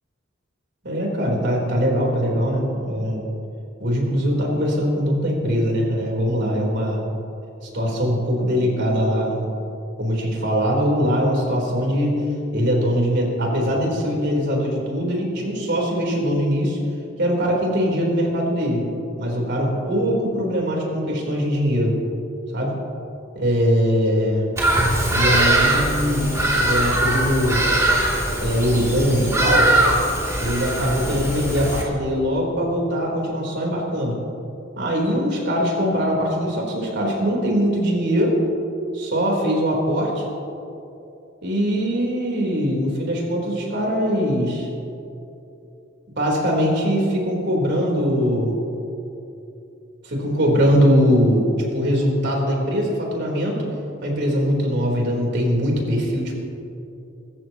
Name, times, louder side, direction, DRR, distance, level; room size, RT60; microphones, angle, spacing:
voice 1, 0.8-3.2 3.8-7.0 7.6-9.4 10.0-12.2 12.5-16.8 17.2-18.8 19.2-21.9 22.5-22.7 23.4-24.4 25.1-27.6 28.4-29.7 30.4-34.2 34.8-38.4 38.9-40.3 41.4-44.7 46.2-48.6 50.0-51.5 51.7-53.6 54.0-56.3, equal, 60° right, -2 dB, 4.0 m, -21 dB
Bird vocalization bird call bird song, 24.6-31.8, right 1 dB, 15° right, 3.0 m, -21 dB
24.5 x 14.5 x 3.1 m, 2.8 s
head